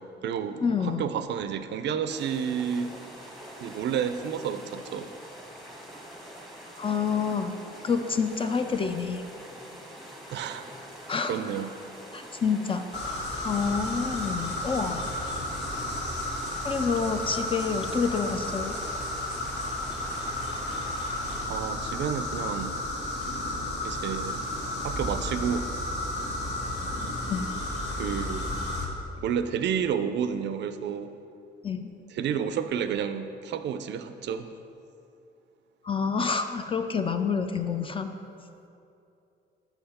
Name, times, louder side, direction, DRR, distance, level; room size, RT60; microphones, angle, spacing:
voice 1, 0.0-2.9 3.6-5.1 10.3-10.7 11.2-11.7 21.4-22.8 23.8-24.4 24.8-25.7 27.9-28.6 29.2-31.1 32.1-34.5, right 7 dB, 65° right, 10 dB, 0.4 m, -30 dB
voice 2, 0.6-1.1 6.8-7.6 7.8-9.2 11.1-11.3 12.1-15.0 16.6-18.8 27.3-27.5 31.6-31.9 35.8-38.1, left 5 dB, 25° left, 7 dB, 0.3 m, -28 dB
sound 1, 2.1-21.5, equal, ahead, 1.0 m, -45 dB
sound 2, 12.9-28.8, left 1 dB, 60° left, 1.2 m, -32 dB
5.8 x 5.7 x 4.2 m, 2.7 s
cardioid pair, 90°, 20 cm